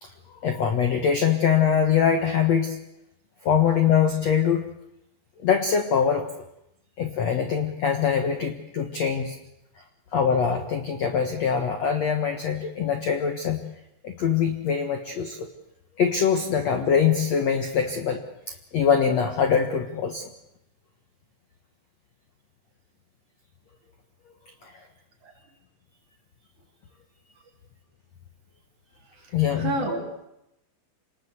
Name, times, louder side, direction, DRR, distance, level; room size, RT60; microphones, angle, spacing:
voice 1, 0.0-2.8 3.4-4.7 5.4-6.3 7.0-9.3 10.1-13.7 14.0-15.5 16.0-18.2 18.5-20.3 24.6-24.9 29.3-29.7, left 7 dB, 80° left, 6 dB, 1.5 m, -23 dB
voice 2, 29.2-30.2, right 2 dB, 40° right, 0 dB, 4.9 m, -31 dB
28.0 x 19.5 x 8.2 m, 0.84 s
omnidirectional pair, 5.5 m